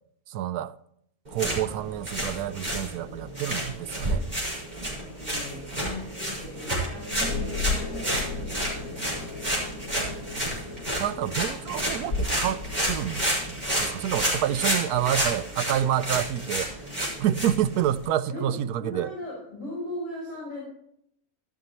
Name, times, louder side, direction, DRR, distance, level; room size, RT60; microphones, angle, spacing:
voice 1, 0.3-0.7 1.3-4.2 11.0-12.6 12.9-16.7 17.0-19.1, right 11 dB, 85° right, 1.1 m, -28 dB
sound 1, 1.3-18.0, right 1 dB, 25° right, 5.1 m, -30 dB
voice 2, 4.9-8.3 8.9-10.5 18.3-18.5 18.8-20.6, left 1 dB, 60° left, 6.1 m, -39 dB
sound 2, 7.2-15.2, left 3 dB, 80° left, 5.5 m, -36 dB
14.0 x 12.5 x 3.0 m
omnidirectional pair, 1.6 m